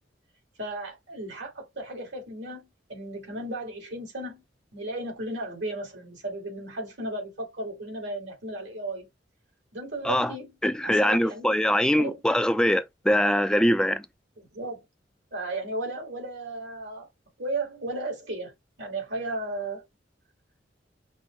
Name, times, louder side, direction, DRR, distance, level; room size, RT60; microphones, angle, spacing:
voice 1, 0.6-4.4 4.7-9.1 9.7-10.5 10.8-11.5 12.0-12.2 14.4-14.8 15.3-17.1 17.4-18.5 18.8-19.8, right 2 dB, 75° right, 2.6 m, -35 dB
voice 2, 10.6-14.0, equal, 5° left, 0.4 m, -23 dB
5.3 x 2.1 x 4.6 m
head